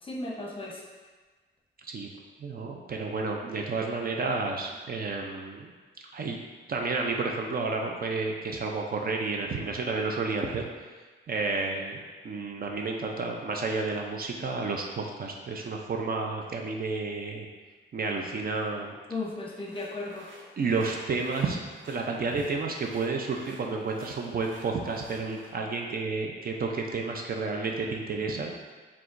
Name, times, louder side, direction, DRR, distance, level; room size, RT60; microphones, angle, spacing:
voice 1, 0.0-0.8 19.1-20.3, left 2 dB, 25° left, -3 dB, 0.8 m, -35 dB
voice 2, 2.4-5.7 6.1-6.4 6.7-10.7 11.3-17.5 17.9-19.0 20.6-21.6 21.8-28.5, right 4 dB, 50° right, 1 dB, 0.5 m, -31 dB
sound 1, 19.6-25.5, right 2 dB, 75° right, 0.8 m, -52 dB
4.8 x 3.5 x 2.5 m, 1.4 s
cardioid pair, 105°, 20 cm